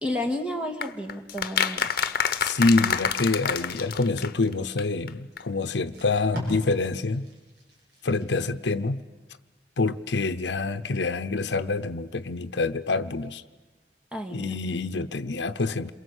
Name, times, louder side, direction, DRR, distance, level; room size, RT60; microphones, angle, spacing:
voice 1, 0.0-1.9 14.1-14.6, left 1 dB, 5° right, 4 dB, 2.0 m, -31 dB
sound 1, 0.8-4.5 4.8-4.9 5.1-5.2 5.4-5.5, left 7 dB, 55° left, 1.1 m, -27 dB
voice 2, 2.4-7.3 8.0-9.0 9.8-13.4 14.3-15.9, left 3 dB, 85° left, 9 dB, 0.8 m, -26 dB
Packing tape duct tape, 5.3-5.4 5.7-8.7 9.1-9.4, equal, 75° right, 6.9 m, -40 dB
28.0 x 23.0 x 8.1 m, 1.2 s
head